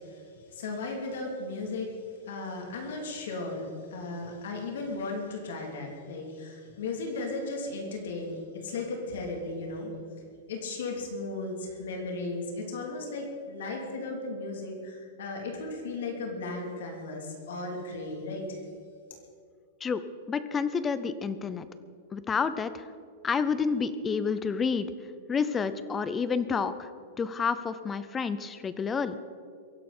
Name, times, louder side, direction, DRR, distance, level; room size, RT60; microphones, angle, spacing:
voice 1, 0.0-1.9 2.3-3.6 3.9-9.9 10.5-18.6, left 3 dB, 75° left, 0 dB, 3.3 m, -36 dB
voice 2, 20.3-21.7 22.1-22.8 23.2-24.9 25.3-26.9 27.2-29.2, left 5 dB, 15° left, 13 dB, 0.6 m, -29 dB
23.0 x 11.5 x 4.4 m, 2.3 s
supercardioid pair, 165°, 0 cm